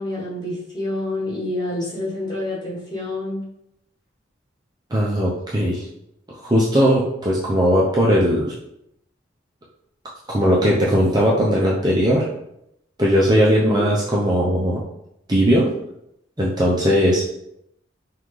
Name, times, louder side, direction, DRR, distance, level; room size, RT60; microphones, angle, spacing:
voice 1, 0.0-3.4 13.6-13.8, left 1 dB, 20° left, -7 dB, 1.4 m, -27 dB
voice 2, 4.9-5.8 6.3-8.5 10.3-12.3 13.0-14.8 15.3-15.7 16.4-17.2, equal, 20° right, -5 dB, 0.5 m, -18 dB
5.5 x 2.4 x 3.2 m, 0.79 s
head